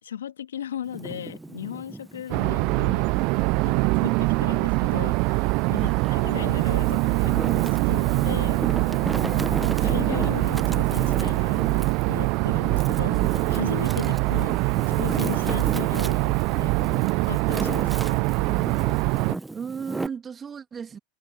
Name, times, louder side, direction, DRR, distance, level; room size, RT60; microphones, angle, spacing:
voice 1, 0.0-3.0 3.6-5.8 6.1-8.6 9.2-16.7 17.3-18.3, left 9 dB, 80° left, 2.1 m, -37 dB
Wind, 0.8-3.7 4.2-5.5 6.1-20.1, right 2 dB, 10° right, 1.3 m, -35 dB
sound 1, 2.3-19.3, right 27 dB, 55° right, 0.4 m, -23 dB
voice 2, 5.7-6.2 9.3-9.6 14.0-14.2 19.2-21.0, right 6 dB, 25° right, 2.6 m, -36 dB
hypercardioid pair, 100°, 0 cm